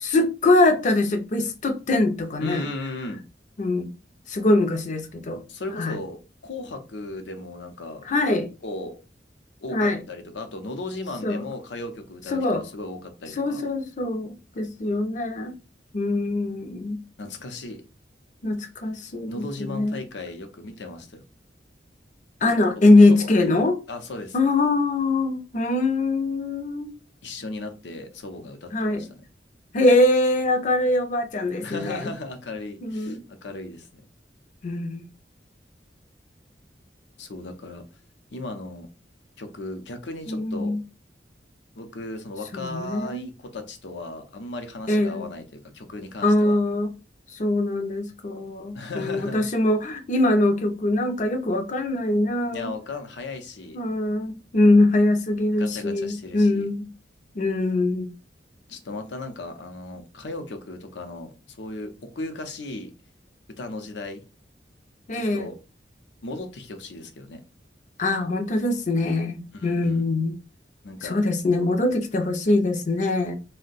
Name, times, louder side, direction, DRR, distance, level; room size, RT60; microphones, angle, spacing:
voice 1, 0.0-2.6 3.6-3.9 4.3-5.4 5.8-6.0 8.1-8.5 9.7-10.0 11.2-11.4 12.3-12.6 13.4-15.5 15.9-17.0 18.4-20.0 22.4-23.8 24.3-26.9 28.7-29.1 29.7-32.1 32.8-33.2 34.6-35.0 40.3-40.8 42.5-43.3 44.9-45.3 46.2-46.9 47.3-52.7 53.7-56.9 57.4-58.1 65.1-65.5 68.0-70.3 71.0-73.3, left 2 dB, 45° left, 0.5 m, -22 dB
voice 2, 2.4-3.2 5.5-8.0 8.6-9.0 9.6-13.6 17.2-17.8 19.3-21.2 22.8-22.9 23.2-23.5 23.9-24.4 27.2-29.1 31.6-33.9 37.2-37.8 38.3-38.9 39.4-40.7 41.8-46.6 48.7-49.4 52.5-53.8 55.6-56.7 58.7-62.9 63.6-64.2 65.1-65.6 66.2-67.4 69.5-70.0 70.8-71.2, left 2 dB, 85° left, 0.6 m, -36 dB
2.6 x 2.1 x 3.9 m
head